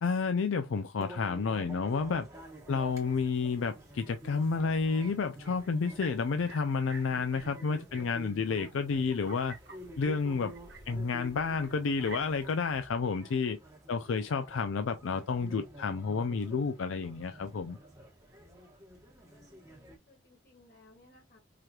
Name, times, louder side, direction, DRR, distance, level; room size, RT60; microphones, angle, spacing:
voice 1, 0.0-2.3 2.7-9.6 10.0-10.5 10.9-13.6 13.9-17.8, left 5 dB, 80° left, 0.4 m, -30 dB
sound 1, 1.0-20.0, right 1 dB, 15° right, 1.1 m, -50 dB
sound 2, 2.3-12.8, right 3 dB, 55° right, 1.3 m, -53 dB
voice 2, 19.2-21.4, left 2 dB, 50° left, 1.8 m, -61 dB
4.9 x 2.9 x 2.3 m
head